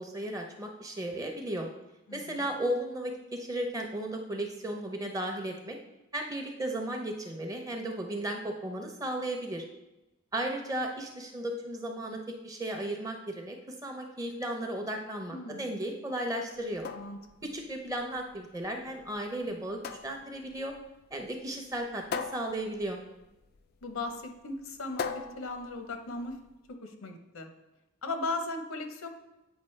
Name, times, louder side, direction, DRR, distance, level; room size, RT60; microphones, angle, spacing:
voice 1, 0.0-1.7 2.1-5.8 6.1-9.6 10.3-13.6 13.8-16.8 17.5-20.7 21.1-23.0, right 1 dB, 15° right, 2 dB, 0.6 m, -35 dB
voice 2, 2.1-2.5 15.3-15.7 17.0-17.2 23.8-26.3 26.8-27.5 28.0-29.1, left 2 dB, 80° left, 6 dB, 0.8 m, -37 dB
sound 1, 16.6-26.6, left 5 dB, 45° left, 0.3 m, -42 dB
8.1 x 5.0 x 3.2 m, 0.98 s
head